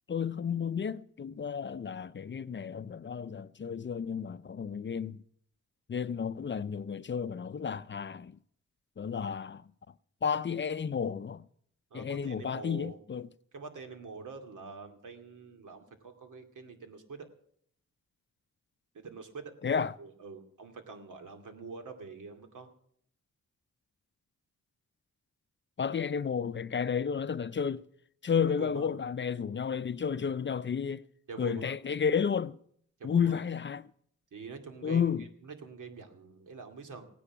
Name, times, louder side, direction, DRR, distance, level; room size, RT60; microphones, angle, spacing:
voice 1, 0.1-5.2 5.9-8.4 9.0-9.6 10.2-11.5 11.9-13.3 19.6-19.9 25.8-27.9 28.2-31.0 31.4-32.6 33.0-33.9 34.8-35.2, left 7 dB, 40° left, 0.5 m, -32 dB
voice 2, 11.9-13.0 13.5-17.3 18.9-22.7 28.6-28.9 31.3-31.7 33.0-33.4 34.3-37.1, right 5 dB, 80° right, 2.5 m, -46 dB
17.0 x 9.9 x 7.2 m
cardioid pair, 80°, 31 cm